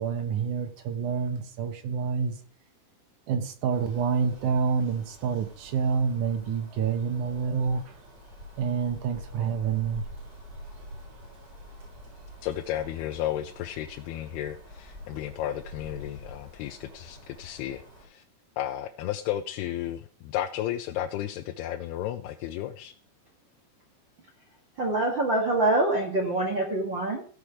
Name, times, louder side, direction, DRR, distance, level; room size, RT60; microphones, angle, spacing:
voice 1, 0.0-2.4 3.3-7.8 8.6-10.0, right 6 dB, 70° right, 6 dB, 2.0 m, -28 dB
sound 1, 3.7-18.0, equal, 30° right, 5.3 m, -46 dB
voice 2, 12.4-18.2 18.6-22.9, left 12 dB, 80° left, 6 dB, 2.5 m, -33 dB
voice 3, 24.8-27.2, right 2 dB, 50° right, -1 dB, 1.4 m, -25 dB
16.0 x 5.9 x 4.9 m, 0.43 s
omnidirectional pair, 5.0 m